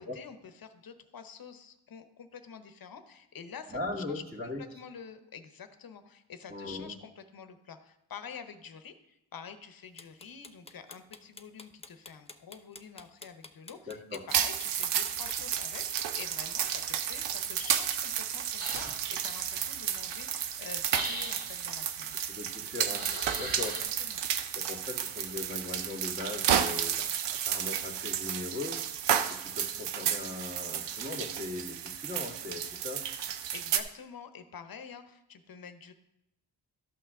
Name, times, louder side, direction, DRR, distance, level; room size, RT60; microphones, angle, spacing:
voice 1, 0.0-3.8 4.1-22.2 24.0-24.2 33.5-35.9, left 6 dB, 55° left, 9 dB, 0.9 m, -47 dB
voice 2, 3.7-4.8 6.5-6.9 13.9-14.2 22.3-23.1 23.3-23.8 24.5-28.8 29.3-33.0, left 3 dB, 20° right, 0 dB, 2.1 m, -39 dB
sound 1, 10.0-16.5, left 3 dB, 15° left, 0.5 m, -49 dB
sound 2, 14.3-33.8, right 9 dB, 90° right, 0.6 m, -32 dB
sound 3, 18.6-19.3 20.9-21.6 22.9-23.8, right 2 dB, 60° right, 2.0 m, -38 dB
12.5 x 5.7 x 3.7 m, 0.85 s
cardioid pair, 65°, 41 cm